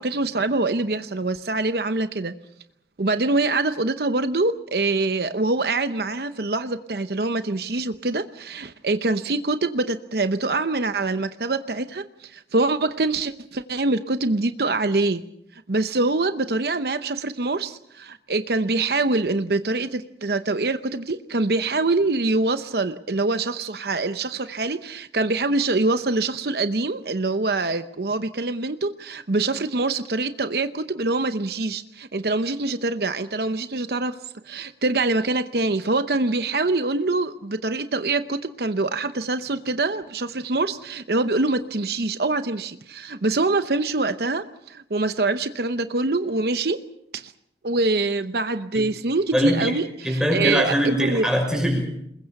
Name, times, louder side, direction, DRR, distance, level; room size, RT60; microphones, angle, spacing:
voice 1, 0.0-2.3 3.0-15.2 15.7-46.8 47.1-47.3 47.6-51.3, right 3 dB, 65° right, 10 dB, 0.8 m, -24 dB
voice 2, 49.3-49.8 50.0-51.9, equal, 5° right, 2 dB, 6.0 m, -22 dB
28.5 x 21.5 x 5.9 m, 0.77 s
head